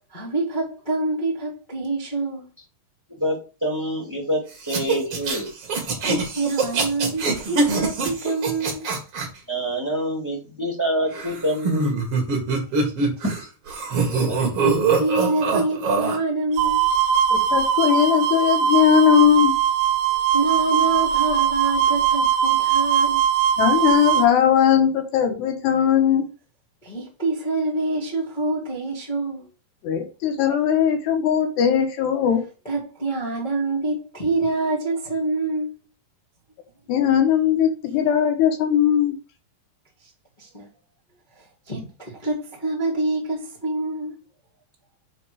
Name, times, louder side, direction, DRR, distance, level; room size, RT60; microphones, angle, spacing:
voice 1, 0.1-2.5 6.0-8.8 12.8-13.1 14.4-16.8 20.3-23.2 26.8-29.5 32.6-35.8 40.4-40.7 41.7-44.1, right 2 dB, 25° left, 0.9 m, -26 dB
voice 2, 3.2-4.4 4.7-5.5 9.5-12.0 14.1-14.4, equal, 5° right, 2.2 m, -26 dB
sound 1, 4.6-9.3 11.1-13.4 13.7-16.2, right 4 dB, 45° right, 2.1 m, -23 dB
sound 2, 16.6-24.3, right 8 dB, 75° right, 2.4 m, -20 dB
voice 3, 17.3-19.5 23.6-26.3 29.8-32.4 36.9-39.2, left 9 dB, 75° left, 3.3 m, -19 dB
6.7 x 5.4 x 4.8 m
omnidirectional pair, 5.1 m